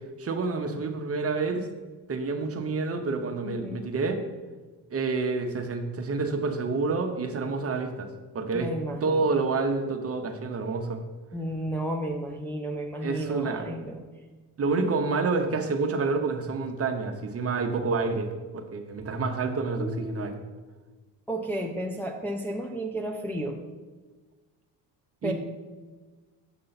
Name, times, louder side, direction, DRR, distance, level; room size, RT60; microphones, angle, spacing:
voice 1, 0.2-1.7 2.1-4.2 4.9-8.1 8.3-8.7 9.0-11.0 13.0-13.7 14.6-18.3 18.5-20.4 25.2-25.3, right 4 dB, 35° right, 5 dB, 0.9 m, -28 dB
voice 2, 3.4-3.9 8.5-9.3 11.3-14.0 19.8-20.3 21.3-23.6 25.2-25.3, right 1 dB, 5° left, 0 dB, 0.5 m, -32 dB
7.7 x 5.4 x 4.1 m, 1.3 s
cardioid pair, 105°, 42 cm